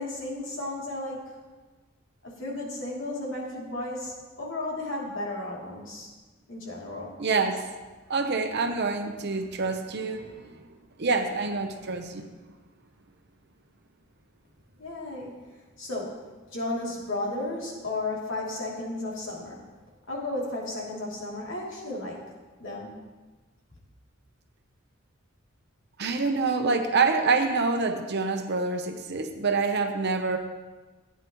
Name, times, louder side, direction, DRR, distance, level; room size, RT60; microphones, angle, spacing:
voice 1, 0.0-1.4 2.2-6.1 6.5-7.1 14.8-15.3 15.8-16.2 16.5-19.6 20.1-22.3 22.6-23.0, left 2 dB, 65° left, -5 dB, 3.0 m, -34 dB
voice 2, 7.2-7.6 8.1-10.6 11.0-12.3 26.0-30.4, right 4 dB, 55° right, 5 dB, 0.9 m, -26 dB
15.5 x 9.4 x 3.1 m, 1.3 s
head